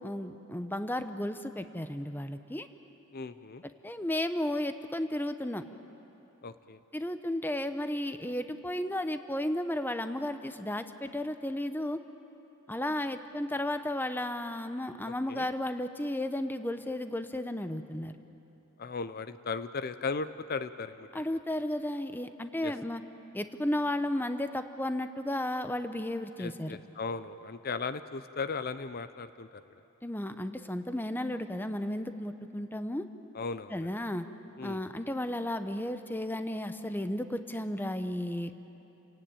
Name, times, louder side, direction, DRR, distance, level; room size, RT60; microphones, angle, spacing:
voice 1, 0.0-2.7 3.8-5.6 6.9-12.0 12.7-18.2 21.1-23.0 23.3-26.8 30.0-33.0 33.7-34.3 34.6-38.6, left 1 dB, 10° left, 9 dB, 0.7 m, -33 dB
voice 2, 3.1-3.6 6.4-6.8 15.1-15.5 18.8-21.1 22.6-22.7 26.4-29.8 33.3-33.9 34.6-34.8, left 4 dB, 45° left, 12 dB, 0.6 m, -37 dB
29.0 x 17.0 x 8.9 m, 3.0 s
head